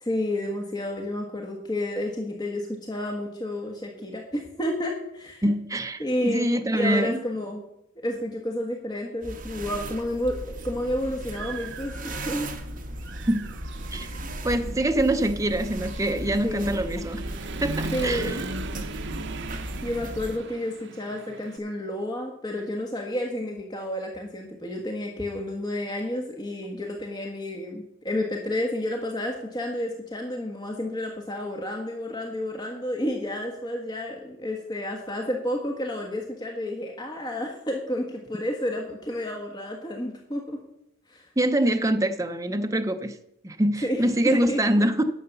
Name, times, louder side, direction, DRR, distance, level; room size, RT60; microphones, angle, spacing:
voice 1, 0.0-5.4 6.0-6.5 6.7-7.6 8.0-12.5 16.4-16.7 17.9-18.4 19.8-40.6 41.1-41.3 43.8-44.6, left 1 dB, 20° left, 1 dB, 1.3 m, -30 dB
voice 2, 5.4-7.2 13.3-13.5 13.9-14.1 14.4-17.2 17.6-18.4 41.4-43.2 43.4-45.0, right 1 dB, 15° right, 7 dB, 0.6 m, -24 dB
sound 1, 9.2-20.4, right 1 dB, 40° right, 1.3 m, -36 dB
Human voice / Motorcycle, 10.3-10.4 10.9-12.6 13.0-21.6, right 3 dB, 60° right, 0.7 m, -38 dB
11.0 x 6.6 x 6.8 m, 0.80 s
head